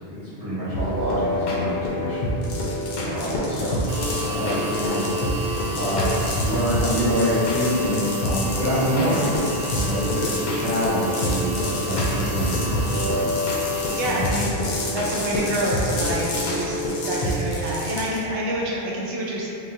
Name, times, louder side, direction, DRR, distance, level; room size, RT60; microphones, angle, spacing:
voice 1, 0.1-2.4 3.0-5.5 5.7-9.3 9.7-13.3 13.9-14.3, equal, 35° right, -17 dB, 1.4 m, -26 dB
sound 1, 0.7-17.6, equal, 55° left, 0.5 m, -27 dB
sound 2, 2.4-18.2, left 3 dB, 75° left, 0.9 m, -34 dB
sound 3, 3.9-14.2, equal, 55° right, 0.5 m, -34 dB
voice 2, 13.9-14.5 14.9-19.5, right 1 dB, 80° right, -4 dB, 0.9 m, -27 dB
3.4 x 2.8 x 2.5 m, 2.9 s
omnidirectional pair, 1.2 m